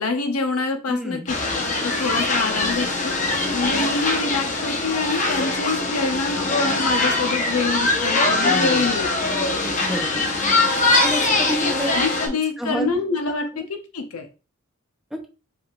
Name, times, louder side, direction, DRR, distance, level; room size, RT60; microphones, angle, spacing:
voice 1, 0.0-1.4 1.8-9.1 11.5-14.3, left 3 dB, 75° left, 5 dB, 0.9 m, -26 dB
voice 2, 0.9-1.3 3.6-3.9 8.4-8.9 9.8-10.2 11.0-11.9 12.6-13.0 13.5-13.7 15.1-15.3, equal, ahead, 2 dB, 0.7 m, -29 dB
sound 1, 1.3-12.3, left 2 dB, 35° left, 0.9 m, -22 dB
4.9 x 3.5 x 2.5 m, 0.33 s
head